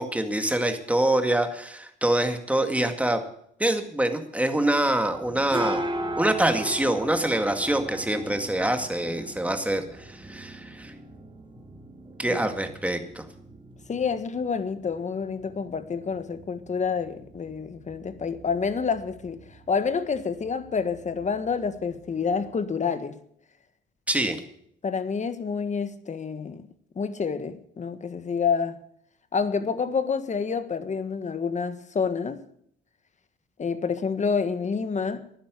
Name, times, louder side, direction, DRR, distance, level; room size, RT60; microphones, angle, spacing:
voice 1, 0.0-3.2 3.6-5.8 6.2-10.9 12.2-13.3 24.1-24.4, right 1 dB, 5° right, 2.1 m, -25 dB
sound 1, 5.1-22.6, right 1 dB, 25° right, 2.1 m, -39 dB
voice 2, 13.9-23.2 24.8-26.7 26.9-28.8 29.3-32.4 33.6-35.2, left 5 dB, 35° left, 1.5 m, -28 dB
12.0 x 9.9 x 8.3 m
cardioid pair, 90°, 20 cm